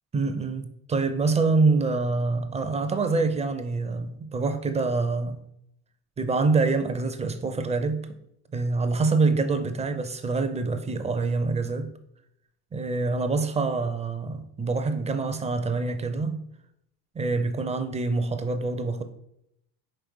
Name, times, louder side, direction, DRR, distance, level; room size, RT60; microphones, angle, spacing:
voice 1, 0.1-5.4 6.2-8.1 8.5-11.9 12.7-16.5 17.1-19.0, right 3 dB, 15° right, 0.5 m, -26 dB
5.2 x 4.5 x 6.1 m
cardioid pair, 130°, 43 cm